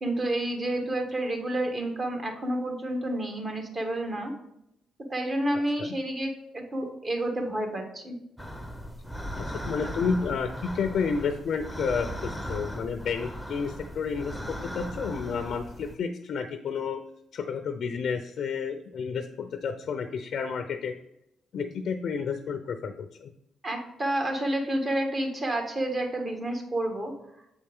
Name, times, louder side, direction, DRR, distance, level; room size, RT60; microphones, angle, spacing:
voice 1, 0.0-4.3 5.1-8.2 23.6-27.1, right 1 dB, 35° right, 3 dB, 1.5 m, -29 dB
sound 1, 8.4-16.0, equal, 5° right, 0.8 m, -38 dB
voice 2, 9.4-17.0 17.3-20.9 21.5-23.3, left 5 dB, 60° left, 7 dB, 0.5 m, -31 dB
7.2 x 4.3 x 3.6 m, 0.79 s
cardioid pair, 90°, 0 cm